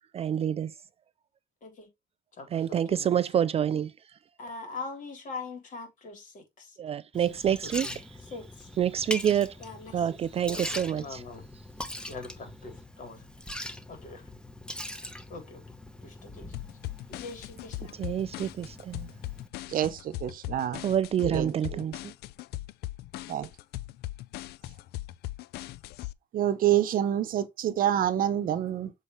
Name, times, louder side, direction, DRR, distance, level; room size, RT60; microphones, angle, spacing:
voice 1, 0.1-0.7 2.5-3.9 6.8-7.9 8.8-9.6 9.9-11.2 18.0-19.1 20.8-22.1, right 9 dB, 35° right, 0.3 m, -27 dB
voice 2, 2.4-3.5 4.4-6.8 7.2-8.0 8.3-8.7 9.6-10.2 10.5-11.4 12.1-13.2 13.9-14.3 15.3-15.7 16.0-16.5 17.1-18.0, left 3 dB, 50° left, 3.7 m, -43 dB
Liquid, 7.1-19.5, left 1 dB, 5° left, 1.1 m, -42 dB
sound 1, 16.5-26.1, left 16 dB, 70° left, 0.4 m, -39 dB
voice 3, 19.7-20.8 21.2-21.8 23.3-23.5 26.3-28.9, right 11 dB, 55° right, 0.8 m, -27 dB
7.3 x 4.1 x 3.2 m
cardioid pair, 110°, 17 cm